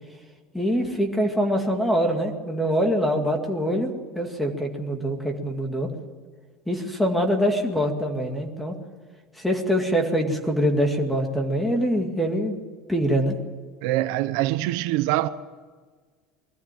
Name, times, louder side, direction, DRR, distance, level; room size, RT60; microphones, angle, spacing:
voice 1, 0.5-3.9 4.2-5.9 6.7-8.8 9.4-12.6 12.9-13.4, equal, 5° left, 2.3 m, -24 dB
voice 2, 13.8-15.3, right 16 dB, 65° right, 0.8 m, -24 dB
21.5 x 14.0 x 9.2 m
cardioid pair, 165°, 0 cm